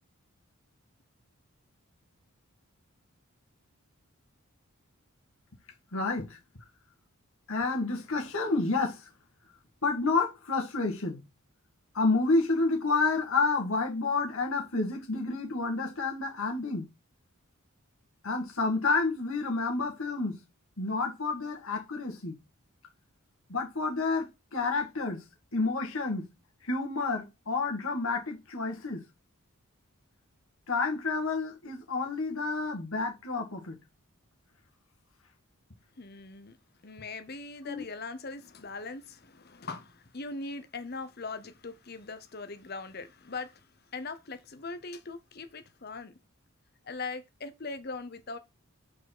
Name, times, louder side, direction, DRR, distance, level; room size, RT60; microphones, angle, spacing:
voice 1, 5.9-6.6 7.5-9.1 9.8-11.2 11.9-16.9 18.2-20.4 20.8-22.4 23.5-26.3 26.6-29.0 30.7-33.8 37.6-37.9, left 3 dB, 70° left, 1.8 m, -29 dB
voice 2, 36.0-36.6 36.8-43.7 43.9-46.1 46.8-48.4, left 3 dB, 45° left, 0.8 m, -40 dB
4.9 x 4.7 x 6.0 m
head